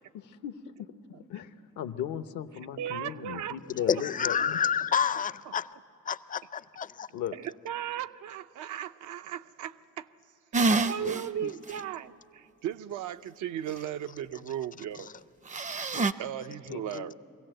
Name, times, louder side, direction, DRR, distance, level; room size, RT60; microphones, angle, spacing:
voice 1, 0.1-0.9 1.3-4.7 7.1-7.4 11.0-11.1 11.4-11.5 15.9-16.1 16.7-17.1, left 10 dB, 85° left, 0.8 m, -37 dB
voice 2, 2.8-3.6 5.5-5.6 7.3-10.1 10.5-15.1 16.2-17.1, right 10 dB, 80° right, 0.6 m, -36 dB
voice 3, 3.9-5.7 6.1-7.1, left 7 dB, 30° left, 0.4 m, -28 dB
sound 1, 10.5-11.2 11.7-11.8 15.5-16.1, right 3 dB, 25° right, 0.5 m, -26 dB
24.0 x 16.5 x 7.7 m
cardioid pair, 90°, 30 cm